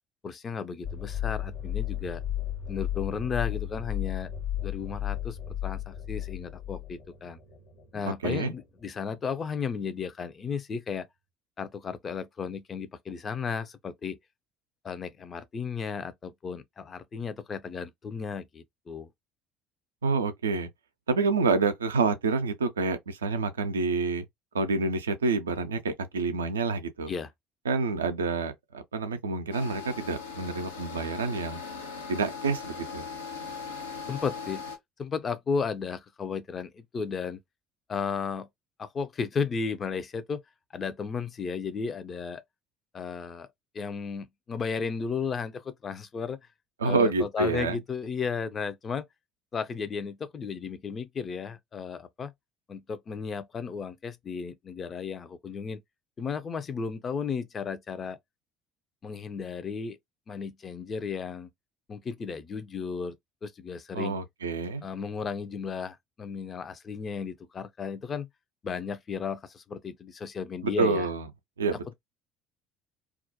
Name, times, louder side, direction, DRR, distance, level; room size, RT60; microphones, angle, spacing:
voice 1, 0.2-2.2 2.7-4.3 4.6-7.4 7.9-11.1 11.6-14.2 14.8-19.1 27.1-27.3 34.1-34.6 35.0-37.4 37.9-38.5 38.8-40.4 40.7-42.4 42.9-43.5 43.7-46.4 46.8-49.0 49.5-52.3 52.7-55.8 56.2-58.2 59.0-60.0 60.3-61.5 61.9-63.1 63.4-64.2 64.8-68.3 68.6-71.1, left 5 dB, 35° left, 0.4 m, -34 dB
sound 1, 0.8-8.1, left 11 dB, 55° left, 0.8 m, -34 dB
voice 2, 8.0-8.5 20.0-20.7 21.1-24.2 24.5-27.1 27.7-31.6 32.1-33.0 46.8-47.8 63.9-64.8 70.6-71.3 71.6-71.9, right 4 dB, 80° right, 0.4 m, -28 dB
sound 2, 29.5-34.8, left 5 dB, 85° left, 0.6 m, -39 dB
2.4 x 2.1 x 2.6 m
figure-of-eight pair, 60°, 0 cm